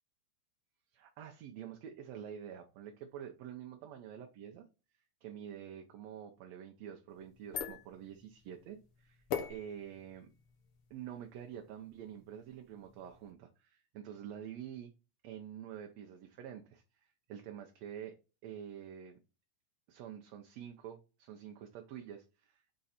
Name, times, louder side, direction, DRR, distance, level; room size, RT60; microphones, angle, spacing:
voice 1, 0.9-4.7 5.2-9.2 9.5-10.3 10.9-14.9 15.2-18.2 18.4-19.2 19.9-22.7, right 9 dB, 70° right, 1.8 m, -47 dB
sound 1, 7.1-13.3, left 7 dB, 60° left, 1.7 m, -45 dB
6.8 x 3.8 x 4.2 m
omnidirectional pair, 3.4 m